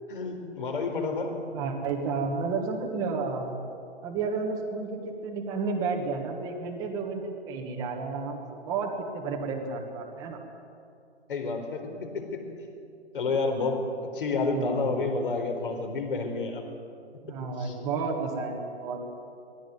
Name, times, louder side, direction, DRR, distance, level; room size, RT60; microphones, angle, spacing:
voice 1, 0.1-1.4 11.3-12.5 13.1-16.7 17.3-17.7, left 3 dB, 50° left, 4 dB, 4.3 m, -30 dB
voice 2, 1.5-3.5 4.0-10.4 14.5-15.1 17.2-19.0, right 4 dB, 10° right, 1 dB, 1.4 m, -31 dB
20.5 x 16.5 x 9.4 m, 2.6 s
hypercardioid pair, 160°, 34 cm